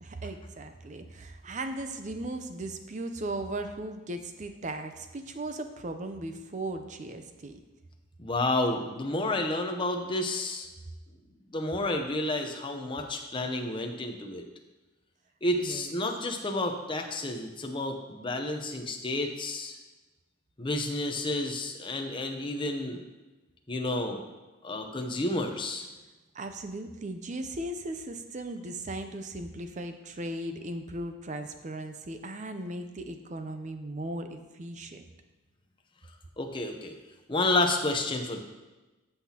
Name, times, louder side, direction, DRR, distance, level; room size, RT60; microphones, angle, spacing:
voice 1, 0.0-7.6 15.6-16.0 26.3-35.0, right 1 dB, 35° right, 7 dB, 0.5 m, -37 dB
voice 2, 8.2-10.7 11.5-14.5 15.4-19.8 20.6-23.0 23.7-24.2 24.6-25.9 36.4-36.9 37.3-38.4, left 2 dB, 20° left, 3 dB, 0.7 m, -30 dB
14.0 x 5.7 x 2.9 m, 1.1 s
head